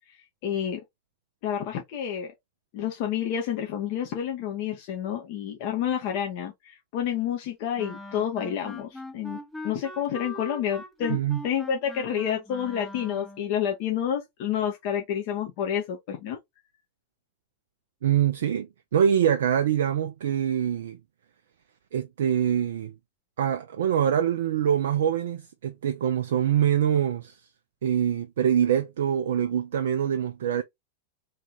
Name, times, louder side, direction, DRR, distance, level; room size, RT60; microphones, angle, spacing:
voice 1, 0.1-0.8 1.4-2.3 2.7-11.2 11.4-16.4, left 9 dB, 45° left, 0.9 m, -29 dB
Wind instrument woodwind instrument, 7.8-13.5, left 1 dB, 5° left, 0.8 m, -41 dB
voice 2, 11.1-11.4 18.0-21.0 21.9-22.9 23.4-27.4 27.8-30.6, right 9 dB, 60° right, 0.4 m, -24 dB
3.4 x 3.2 x 2.9 m
figure-of-eight pair, 90°, 0 cm